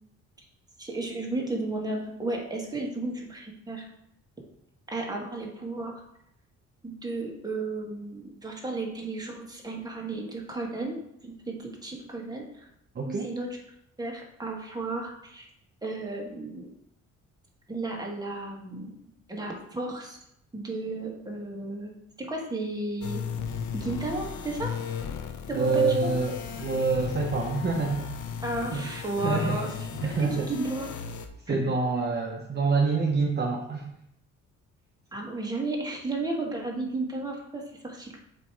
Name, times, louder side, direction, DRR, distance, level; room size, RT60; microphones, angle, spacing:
voice 1, 0.8-3.9 4.9-6.0 6.8-12.7 13.1-13.6 14.0-15.5 15.8-16.7 17.7-19.0 19.3-20.2 20.5-23.2 23.7-24.7 25.5-26.1 28.4-29.7 30.0-31.0 31.5-31.7 35.1-38.2, right 2 dB, 15° right, -1 dB, 1.7 m, -33 dB
voice 2, 12.9-13.3 25.5-28.1 28.7-28.8 29.2-29.6 30.0-30.5 31.5-33.9, right 4 dB, 35° right, 1 dB, 0.8 m, -26 dB
sound 1, 23.0-31.3, left 7 dB, 80° left, 0.7 m, -35 dB
7.6 x 3.1 x 4.6 m, 0.76 s
cardioid pair, 90°, 30 cm